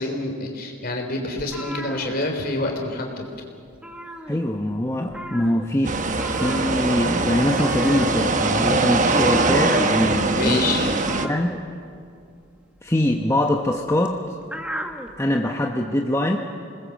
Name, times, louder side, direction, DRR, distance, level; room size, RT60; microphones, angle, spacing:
voice 1, 0.0-3.2 10.3-10.8, left 2 dB, 45° left, 2 dB, 3.7 m, -27 dB
sound 1, 1.4-2.9 3.1-3.4 3.7-4.8 5.1-15.2, equal, 5° right, 1.4 m, -37 dB
voice 2, 4.3-6.0 6.3-10.9 11.2-11.6 12.8-14.2 15.2-16.4, left 1 dB, 15° left, 2 dB, 0.9 m, -23 dB
sound 2, 5.8-11.3, right 3 dB, 40° right, 1.1 m, -22 dB
27.5 x 20.0 x 7.4 m, 2.4 s
head